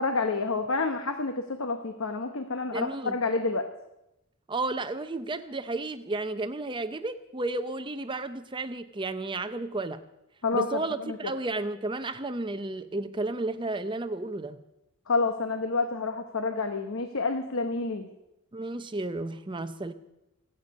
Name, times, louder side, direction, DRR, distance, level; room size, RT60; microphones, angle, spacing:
voice 1, 0.0-3.7 10.4-11.2 15.1-18.1, left 3 dB, 65° left, 6 dB, 0.9 m, -29 dB
voice 2, 2.7-3.1 4.5-10.0 10.5-14.6 18.5-19.9, right 2 dB, 20° right, 11 dB, 0.6 m, -32 dB
26.0 x 9.0 x 5.3 m, 0.91 s
head